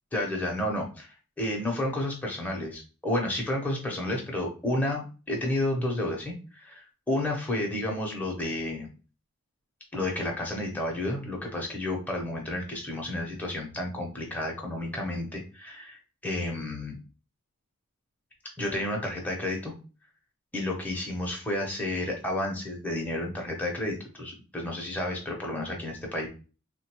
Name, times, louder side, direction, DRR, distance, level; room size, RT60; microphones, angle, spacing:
voice 1, 0.1-1.1 1.4-8.9 9.9-17.0 18.6-19.7 20.5-26.3, left 1 dB, 5° left, -1 dB, 0.6 m, -31 dB
3.6 x 2.2 x 2.9 m, 0.35 s
head